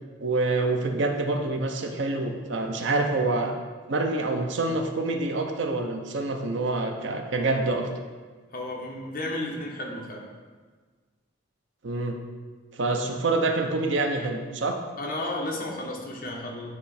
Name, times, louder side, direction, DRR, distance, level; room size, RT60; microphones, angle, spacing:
voice 1, 0.2-3.5 3.9-7.9 11.8-12.2 12.7-14.8, right 2 dB, 70° right, 4 dB, 0.6 m, -26 dB
voice 2, 8.5-10.3 15.0-16.7, left 1 dB, 45° left, -2 dB, 1.2 m, -33 dB
8.6 x 3.1 x 4.2 m, 1.4 s
head